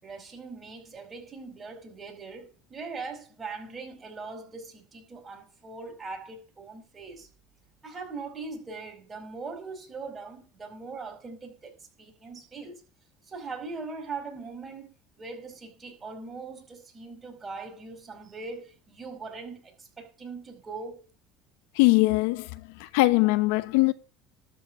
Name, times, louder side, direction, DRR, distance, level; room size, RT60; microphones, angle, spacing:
voice 1, 0.0-7.3 7.8-12.8 13.3-21.0, right 4 dB, 25° right, 4.8 m, -41 dB
voice 2, 21.8-22.5 22.8-23.9, left 22 dB, 80° left, 0.9 m, -21 dB
13.0 x 4.7 x 8.6 m
supercardioid pair, 95°, 0 cm